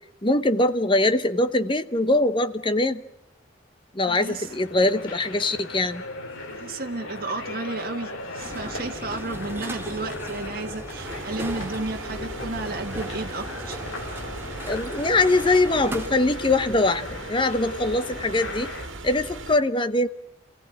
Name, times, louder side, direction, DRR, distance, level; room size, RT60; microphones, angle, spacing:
voice 1, 0.2-3.0 3.9-6.0 14.7-18.7 19.0-20.1, left 2 dB, 25° left, 12 dB, 0.9 m, -22 dB
voice 2, 4.1-4.5 6.5-13.8, right 3 dB, 50° right, 4 dB, 1.7 m, -33 dB
sound 1, 4.2-18.9, left 2 dB, 85° left, 3.5 m, -38 dB
sound 2, 8.4-16.1, right 1 dB, 10° right, 2.2 m, -37 dB
sound 3, 10.9-19.6, right 2 dB, 75° right, 1.9 m, -38 dB
28.5 x 16.5 x 9.9 m, 0.80 s
head